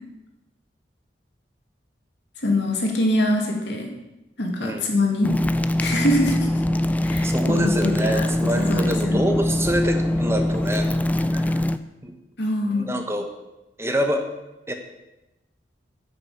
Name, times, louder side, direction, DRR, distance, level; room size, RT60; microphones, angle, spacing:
voice 1, 2.4-3.9 4.4-5.3 5.8-6.5 7.0-8.3 8.6-9.3 12.4-13.1, left 1 dB, 70° left, 1 dB, 2.4 m, -24 dB
sound 1, 5.2-11.8, left 1 dB, 10° left, 0.3 m, -23 dB
voice 2, 7.2-10.9 11.3-11.5 12.0-12.2 12.7-13.3 13.8-14.3 14.7-14.8, equal, 15° right, 5 dB, 0.9 m, -26 dB
9.8 x 6.6 x 8.2 m, 0.99 s
head